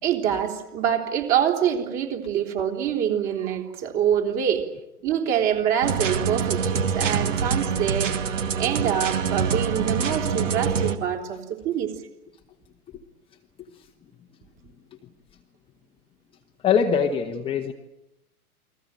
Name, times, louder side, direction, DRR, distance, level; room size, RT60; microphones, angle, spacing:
voice 1, 0.0-4.6 5.0-8.2 8.6-11.9, right 9 dB, 30° right, 4 dB, 3.8 m, -25 dB
sound 1, 5.8-11.0, right 6 dB, 55° right, 2.2 m, -25 dB
voice 2, 16.6-17.7, left 6 dB, 10° left, 1 dB, 1.2 m, -23 dB
29.5 x 21.5 x 9.1 m, 0.89 s
figure-of-eight pair, 125°, 45 cm